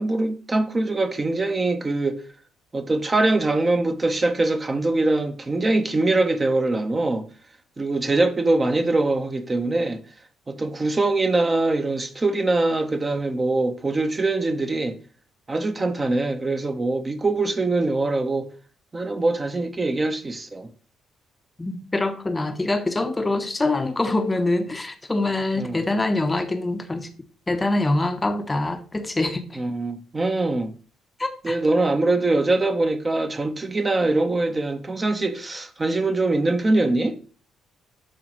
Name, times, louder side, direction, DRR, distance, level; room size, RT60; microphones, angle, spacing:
voice 1, 0.0-2.2 2.7-7.3 7.8-10.0 10.5-14.9 15.5-18.5 18.9-20.7 25.6-25.8 29.6-30.7 31.4-37.1, right 2 dB, 25° right, 1.0 m, -23 dB
voice 2, 21.6-27.1 27.5-29.6 31.2-31.6, left 2 dB, 20° left, 0.8 m, -24 dB
11.5 x 4.0 x 3.1 m
figure-of-eight pair, 45°, 0 cm